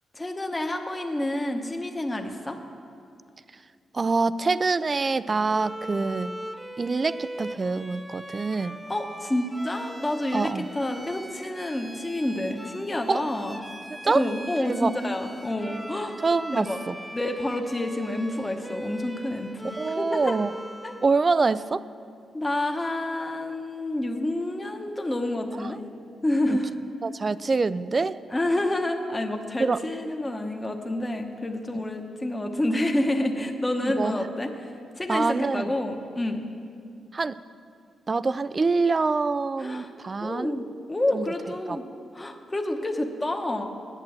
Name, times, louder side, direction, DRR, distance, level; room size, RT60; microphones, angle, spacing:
voice 1, 0.1-2.6 8.9-13.6 14.0-16.2 16.5-16.8 17.1-20.4 20.8-20.9 22.3-25.8 26.2-26.7 28.3-36.4 39.6-39.9 40.2-41.8 42.1-43.7, left 1 dB, 20° left, 4 dB, 1.0 m, -28 dB
voice 2, 3.9-6.3 6.8-8.8 10.3-10.7 13.1-13.2 14.0-14.2 14.7-15.0 16.2-17.0 19.8-20.5 21.0-21.8 25.5-25.7 26.5-26.6 27.0-28.2 29.6-29.8 33.8-34.2 35.1-35.7 37.1-37.4 38.1-40.5 41.1-41.3 41.7-41.8, right 4 dB, 40° right, 16 dB, 0.3 m, -25 dB
Bowed string instrument, 5.5-21.3, right 1 dB, 10° right, 0.7 m, -40 dB
9.0 x 8.3 x 7.5 m, 2.4 s
cardioid pair, 60°, 0 cm